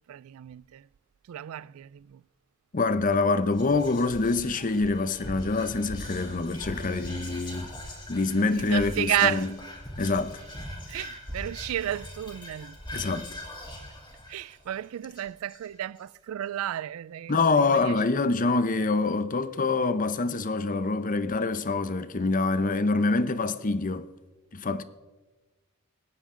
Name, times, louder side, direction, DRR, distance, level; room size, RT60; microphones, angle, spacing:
voice 1, 0.1-0.9 1.3-2.2 8.4-9.5 10.9-12.8 14.3-18.0, right 12 dB, 80° right, 0.3 m, -32 dB
voice 2, 2.7-7.7 8.1-9.5 10.0-10.4 12.9-13.3 17.3-24.1 24.5-24.8, left 3 dB, 40° left, 0.8 m, -25 dB
Whispering, 3.5-16.0, left 1 dB, 20° left, 3.9 m, -41 dB
26.0 x 10.0 x 3.8 m
head